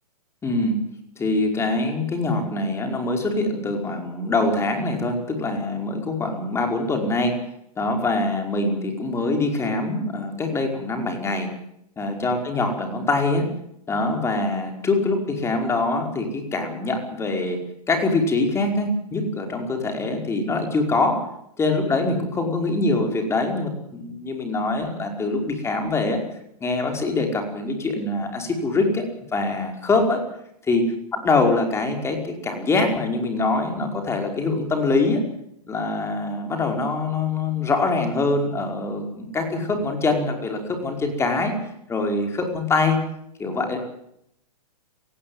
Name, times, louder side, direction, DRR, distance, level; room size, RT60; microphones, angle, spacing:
voice 1, 0.4-0.8 1.2-7.4 7.8-11.5 12.0-13.5 13.9-17.6 17.9-21.2 21.6-26.2 26.6-29.1 29.3-30.2 30.6-30.8 31.1-35.2 35.7-41.6 41.9-43.0 43.4-43.8, left 3 dB, 15° left, 4 dB, 5.2 m, -24 dB
18.5 x 15.5 x 9.6 m, 0.75 s
hypercardioid pair, 130°, 20 cm